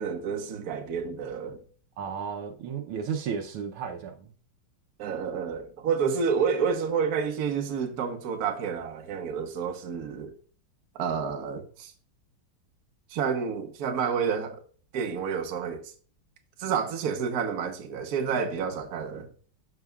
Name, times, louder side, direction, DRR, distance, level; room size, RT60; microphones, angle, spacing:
voice 1, 0.0-1.6 5.0-10.3 10.9-11.9 13.1-14.6 14.9-15.9 16.6-19.3, right 6 dB, 55° right, 1.2 m, -29 dB
voice 2, 2.0-4.3, right 6 dB, 80° right, 1.7 m, -33 dB
12.0 x 5.6 x 2.4 m
omnidirectional pair, 2.4 m